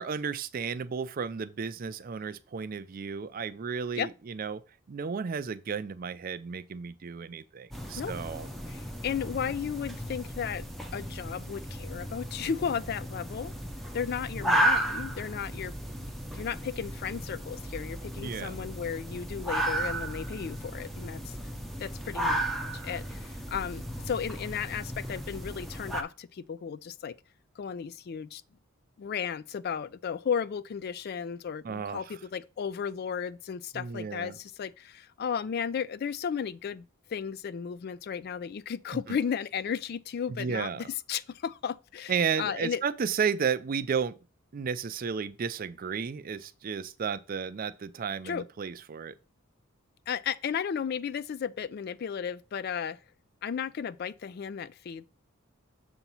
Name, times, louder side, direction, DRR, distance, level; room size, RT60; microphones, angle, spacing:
voice 1, 0.0-4.6 4.9-8.5 18.2-18.6 31.6-32.2 33.7-34.4 39.1-39.2 40.3-40.8 42.1-44.2 44.5-49.1, right 6 dB, 40° right, 0.4 m, -33 dB
sound 1, 7.7-26.0, right 1 dB, ahead, 0.7 m, -34 dB
voice 2, 8.7-10.6 10.9-13.5 13.9-21.3 21.8-22.5 22.8-27.1 27.6-28.4 29.0-36.8 37.1-42.8 48.2-48.4 50.1-53.0 53.4-55.1, left 7 dB, 45° left, 0.3 m, -34 dB
6.8 x 3.0 x 5.4 m
head